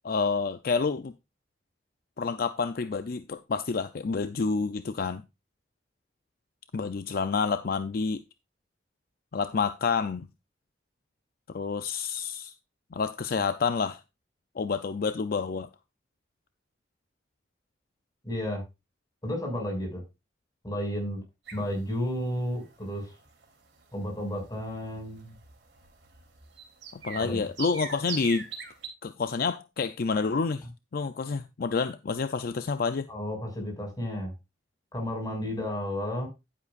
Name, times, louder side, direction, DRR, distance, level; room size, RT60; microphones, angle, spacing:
voice 1, 0.0-1.1 2.2-5.2 6.7-8.2 9.3-10.3 11.5-12.5 12.9-14.0 14.6-15.7 26.9-28.5 29.0-30.7 30.9-33.1, left 5 dB, 55° left, 0.5 m, -28 dB
voice 2, 18.2-18.6 19.2-20.0 20.6-21.2 21.5-23.1 23.9-25.3 27.2-27.4 33.1-34.3 34.9-36.3, equal, 25° left, 5.8 m, -32 dB
sound 1, 21.5-28.9, right 6 dB, 90° right, 3.1 m, -43 dB
11.0 x 9.8 x 2.5 m
head